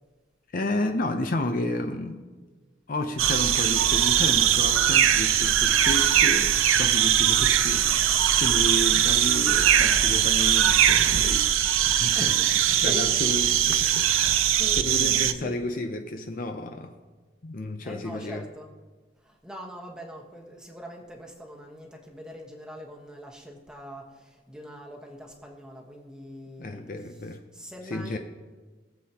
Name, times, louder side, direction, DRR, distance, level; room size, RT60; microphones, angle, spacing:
voice 1, 0.5-2.2 2.9-11.5 11.9-16.9 17.4-18.5 26.6-27.4 27.9-28.2, left 1 dB, 45° left, 5 dB, 0.6 m, -32 dB
sound 1, 3.2-15.3, right 10 dB, 85° right, 0.6 m, -21 dB
voice 2, 12.1-13.4 14.1-15.6 17.8-18.7 19.2-28.2, equal, 5° right, -1 dB, 1.2 m, -42 dB
21.5 x 7.6 x 2.9 m, 1.3 s
head